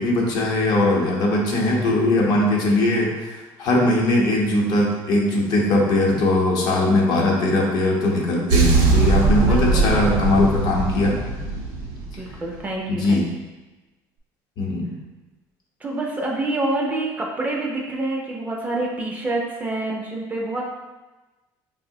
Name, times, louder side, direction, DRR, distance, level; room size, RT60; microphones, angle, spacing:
voice 1, 0.0-11.2 12.9-13.3 14.6-15.0, left 2 dB, 50° left, -2 dB, 0.7 m, -20 dB
sound 1, 8.5-12.6, right 3 dB, 80° right, 0.6 m, -20 dB
voice 2, 9.4-10.0 12.2-13.3 15.8-20.6, right 2 dB, 20° right, -1 dB, 0.4 m, -27 dB
4.3 x 2.0 x 2.7 m, 1.2 s
cardioid pair, 135°, 8 cm